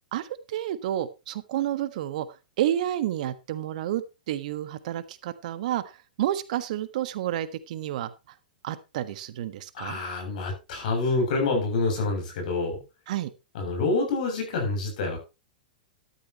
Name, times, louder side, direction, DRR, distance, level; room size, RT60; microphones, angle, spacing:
voice 1, 0.1-8.3 8.6-10.0 13.1-13.3, right 12 dB, 55° right, 13 dB, 1.4 m, -30 dB
voice 2, 9.7-12.8 13.5-15.2, left 3 dB, 60° left, 3 dB, 7.3 m, -27 dB
13.0 x 11.5 x 3.0 m, 0.27 s
figure-of-eight pair, 105°, 5 cm